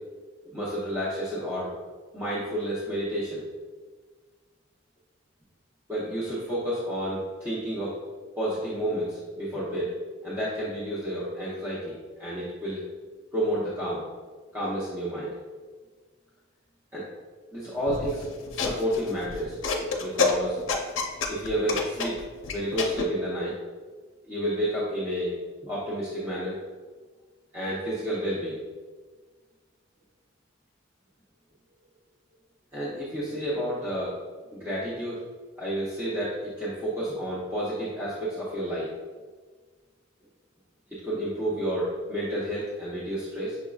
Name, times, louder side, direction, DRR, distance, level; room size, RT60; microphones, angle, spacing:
voice 1, 0.5-1.7 2.1-3.4 5.9-8.0 8.4-12.8 13.3-14.0 14.5-15.3 16.9-17.1 17.5-19.6 20.0-20.6 21.3-22.1 22.5-23.6 24.3-25.3 25.6-26.6 27.5-28.6 32.7-34.1 34.5-35.2 35.6-38.9 40.9-43.6, equal, 10° right, -10 dB, 0.7 m, -30 dB
sound 1, 17.9-23.0, left 4 dB, 65° left, 0.5 m, -29 dB
5.9 x 3.6 x 2.3 m, 1.4 s
head